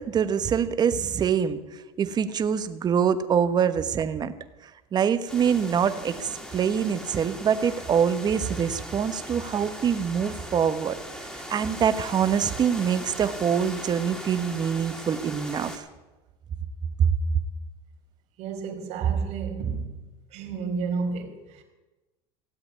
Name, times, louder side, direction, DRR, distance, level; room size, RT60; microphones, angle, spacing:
voice 1, 0.0-4.3 4.6-11.0 11.5-15.8 17.0-17.1, right 7 dB, 30° right, 1.1 m, -25 dB
sound 1, 5.3-15.8, equal, 5° left, 2.5 m, -39 dB
voice 2, 18.4-20.0 20.3-21.6, right 5 dB, 55° right, 3.4 m, -30 dB
16.5 x 7.9 x 9.6 m
supercardioid pair, 130°, 13 cm